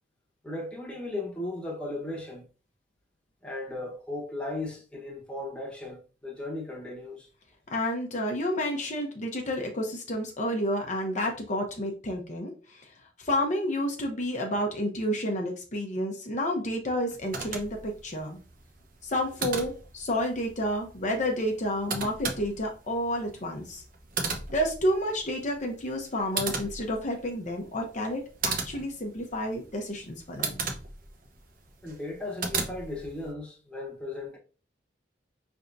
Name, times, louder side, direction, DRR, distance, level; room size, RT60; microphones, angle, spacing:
voice 1, 0.4-2.4 3.4-7.3 31.8-34.4, left 2 dB, 5° left, 1.1 m, -36 dB
voice 2, 7.7-12.9 13.2-18.4 19.0-23.8 24.5-30.6, equal, 45° left, 0.8 m, -30 dB
sound 1, 17.1-33.3, right 4 dB, 50° right, 0.8 m, -37 dB
5.5 x 3.5 x 2.6 m
head